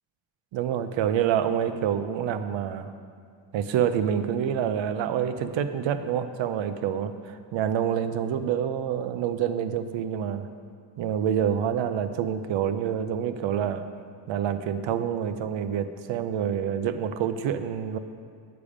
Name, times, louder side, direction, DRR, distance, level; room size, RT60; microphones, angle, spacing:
voice 1, 0.5-2.9 3.5-10.5 11.0-13.9 14.3-18.0, right 9 dB, 75° right, 10 dB, 0.7 m, -27 dB
10.0 x 6.9 x 5.0 m, 2.2 s
wide cardioid pair, 175°, 45 cm